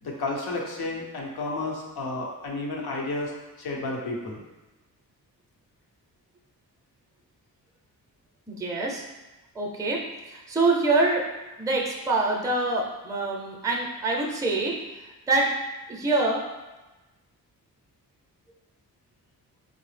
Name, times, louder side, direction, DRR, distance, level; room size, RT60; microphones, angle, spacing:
voice 1, 0.0-3.3 3.6-4.4, left 2 dB, 90° left, -1 dB, 0.8 m, -31 dB
voice 2, 8.5-9.0 9.5-11.2 11.6-14.8 15.3-15.5 15.9-16.4, right 2 dB, 10° right, 0 dB, 0.5 m, -25 dB
4.6 x 2.0 x 3.2 m, 1.1 s
cardioid pair, 105°, 37 cm